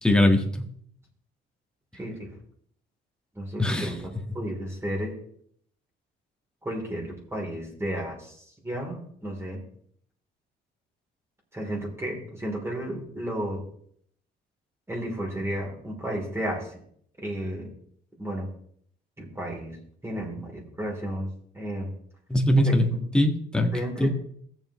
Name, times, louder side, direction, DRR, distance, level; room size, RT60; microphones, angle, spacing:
voice 1, 0.0-0.6 3.6-3.9 22.3-23.7 24.0-24.1, left 1 dB, 5° left, 3 dB, 1.6 m, -21 dB
voice 2, 1.9-2.3 3.4-5.2 6.6-8.4 8.6-9.6 11.5-13.6 14.9-16.8 17.2-17.7 18.2-18.5 19.2-19.8 20.0-21.9 22.6-22.8 23.7-24.1, right 1 dB, 15° right, -1 dB, 3.5 m, -33 dB
15.5 x 7.3 x 3.1 m, 0.64 s
cardioid pair, 90°, 20 cm